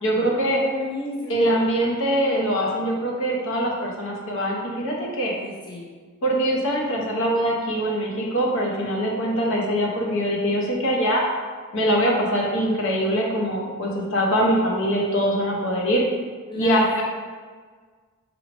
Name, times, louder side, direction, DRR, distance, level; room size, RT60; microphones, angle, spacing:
voice 1, 0.0-0.6 1.3-5.3 6.2-11.2 11.7-16.0 16.6-17.0, equal, 60° left, -2 dB, 0.8 m, -23 dB
voice 2, 0.6-1.6 5.3-5.9 16.5-17.0, left 2 dB, 20° left, -5 dB, 0.4 m, -33 dB
4.6 x 3.3 x 2.5 m, 1.5 s
head